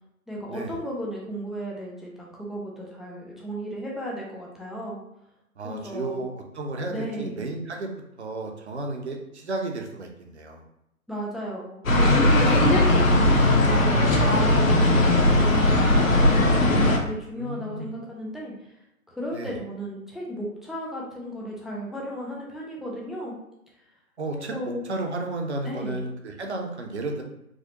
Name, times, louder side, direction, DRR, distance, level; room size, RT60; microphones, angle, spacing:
voice 1, 0.3-5.0 5.6-6.2 6.9-7.5 11.1-18.5 19.1-23.3 24.3-24.8 25.6-26.0, equal, ahead, -4 dB, 0.3 m, -35 dB
voice 2, 5.6-7.9 8.2-10.6 12.5-12.8 17.4-17.9 19.3-19.5 24.2-27.2, right 2 dB, 50° right, 2 dB, 0.7 m, -33 dB
sound 1, 11.9-17.0, left 1 dB, 65° left, 0.9 m, -18 dB
4.7 x 2.0 x 2.9 m, 0.83 s
figure-of-eight pair, 145°, 44 cm